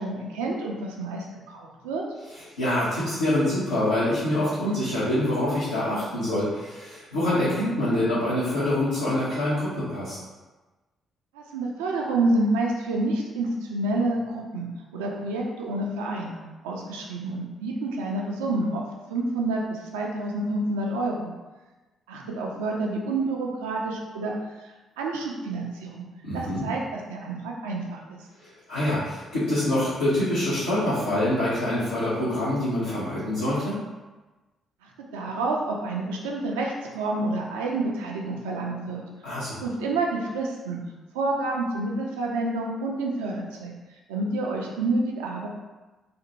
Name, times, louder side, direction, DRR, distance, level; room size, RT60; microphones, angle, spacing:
voice 1, 0.0-2.0 11.3-16.4 16.6-18.8 19.1-21.3 22.1-24.4 25.0-26.0 26.3-28.2 34.8-39.0 39.6-40.8 41.1-43.7 44.1-45.5, right 2 dB, 75° right, -1 dB, 0.3 m, -28 dB
voice 2, 2.3-10.2 26.2-26.6 28.4-33.8 39.2-39.6, left 1 dB, 80° left, -13 dB, 0.6 m, -25 dB
2.5 x 2.0 x 2.8 m, 1.2 s
figure-of-eight pair, 40°, 0 cm